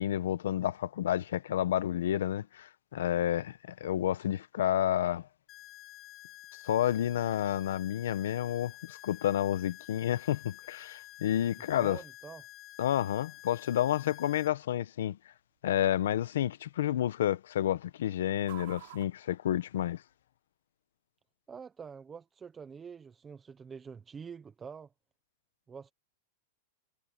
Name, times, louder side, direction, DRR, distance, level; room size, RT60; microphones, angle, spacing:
voice 1, 0.0-5.3 6.6-12.0 12.8-15.2 15.6-20.0, left 11 dB, 80° left, 1.1 m, -30 dB
sound 1, 5.5-14.5, left 15 dB, 30° left, 3.9 m, -50 dB
sound 2, 5.5-20.3, right 20 dB, 55° right, 4.5 m, -60 dB
voice 2, 11.8-12.4 21.5-24.9 25.7-25.9, right 6 dB, 15° right, 0.8 m, -46 dB
supercardioid pair, 160°, 0 cm